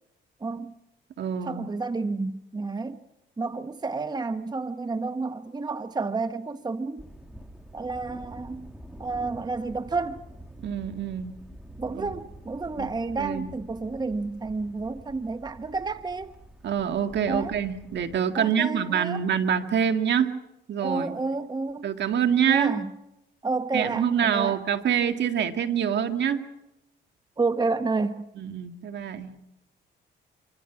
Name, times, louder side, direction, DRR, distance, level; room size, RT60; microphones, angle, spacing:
voice 1, 0.4-0.7 1.5-3.0 3.4-7.0 7.7-8.7 9.0-10.2 11.8-16.3 17.3-17.6 18.4-19.2 20.8-21.9 22.5-22.9 23.4-24.6 27.4-28.3, right 3 dB, 20° right, 0.9 m, -30 dB
voice 2, 1.2-1.7 10.6-11.4 11.9-12.1 12.8-13.5 16.6-20.3 20.7-21.2 21.8-22.8 23.7-26.4 28.4-29.3, right 8 dB, 60° right, 2.0 m, -26 dB
Thunder, 7.0-18.2, equal, 5° right, 2.3 m, -46 dB
26.5 x 24.5 x 6.0 m
cardioid pair, 90°, 20 cm